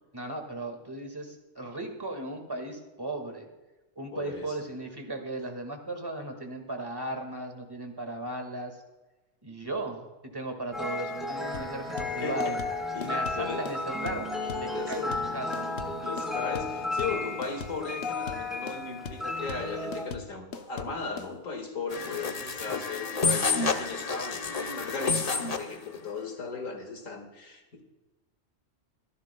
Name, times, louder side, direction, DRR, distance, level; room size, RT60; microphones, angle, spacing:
voice 1, 0.1-3.5 4.0-8.8 9.4-12.6 13.0-14.3 14.5-15.7 22.7-22.8, right 2 dB, 15° right, 3 dB, 1.9 m, -36 dB
voice 2, 4.1-4.6 12.2-12.6 12.9-13.6 14.7-15.1 16.0-27.8, left 4 dB, 80° left, 4 dB, 2.2 m, -37 dB
sound 1, 10.7-20.0, left 2 dB, ahead, 2.6 m, -33 dB
sound 2, 11.5-21.3, left 5 dB, 55° left, 1.0 m, -40 dB
sound 3, 21.9-25.7, left 4 dB, 35° left, 0.8 m, -29 dB
25.5 x 11.0 x 2.3 m, 1.1 s
omnidirectional pair, 1.4 m